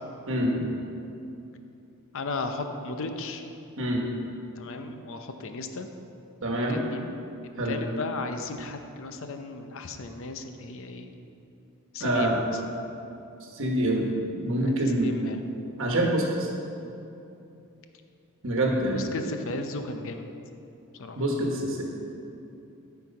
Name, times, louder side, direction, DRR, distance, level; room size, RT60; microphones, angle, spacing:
voice 1, 2.1-3.4 4.6-5.9 6.7-7.1 7.6-11.1 11.9-12.4 14.3-15.5 18.9-20.3 21.0-21.2, left 3 dB, 60° left, 6 dB, 0.7 m, -35 dB
voice 2, 6.4-6.8 7.6-7.8 12.0-12.4 13.5-14.1 14.4-15.1 15.8-16.5 18.4-19.1 21.2-21.8, right 1 dB, 60° right, 0 dB, 1.3 m, -25 dB
12.0 x 4.7 x 5.3 m, 2.8 s
head